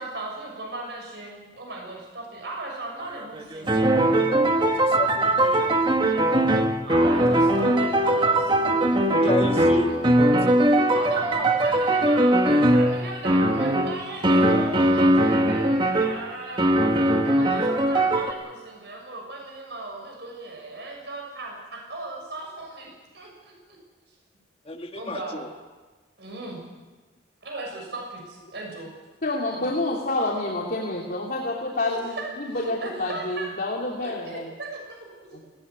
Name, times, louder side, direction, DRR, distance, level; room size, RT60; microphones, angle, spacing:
voice 1, 0.0-4.0 6.8-9.1 9.9-10.0 10.3-16.6 17.2-22.9 23.1-23.5 24.9-25.5 26.2-26.6 27.4-28.9 29.5-29.6 31.9-33.5 34.0-35.6, right 2 dB, 70° right, 0 dB, 6.5 m, -37 dB
sound 1, 3.0-16.2 16.6-18.3, right 1 dB, 25° right, 1.6 m, -20 dB
voice 2, 4.0-5.8 9.0-10.0 24.6-25.5, left 1 dB, 30° left, 5 dB, 1.6 m, -32 dB
voice 3, 29.2-34.5 35.3-35.4, left 2 dB, 55° left, -3 dB, 2.9 m, -28 dB
19.0 x 18.5 x 9.6 m, 1.3 s
head